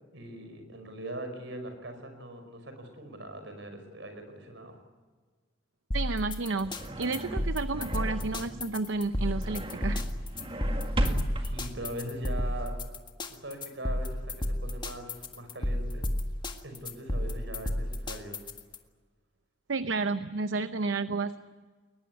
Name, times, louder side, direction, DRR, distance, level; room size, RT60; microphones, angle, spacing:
voice 1, 0.1-4.8 11.3-12.8 13.3-16.0 16.6-18.4, right 1 dB, 70° right, 7 dB, 5.3 m, -41 dB
sound 1, 5.9-18.8, left 1 dB, 25° left, 1.8 m, -32 dB
voice 2, 5.9-10.0 19.7-21.3, right 3 dB, 85° right, 11 dB, 0.7 m, -31 dB
sound 2, 6.3-12.7, right 1 dB, 30° right, 2.0 m, -36 dB
22.0 x 20.5 x 9.6 m, 1.5 s
head